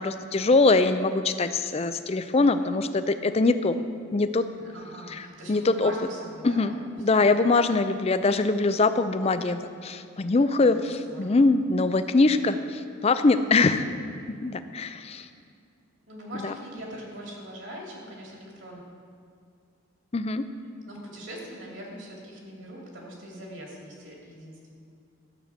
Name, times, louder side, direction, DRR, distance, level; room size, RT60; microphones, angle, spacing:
voice 1, 0.0-3.8 4.1-4.5 5.1-5.2 5.5-5.9 6.4-13.8 14.3-15.2 16.4-16.5 20.1-20.4, left 3 dB, 30° left, 11 dB, 0.4 m, -23 dB
voice 2, 4.5-7.5 10.7-11.5 12.1-12.6 13.3-13.7 16.1-18.8 20.9-24.7, right 1 dB, 60° right, -2 dB, 2.7 m, -42 dB
13.0 x 8.0 x 5.9 m, 2.3 s
head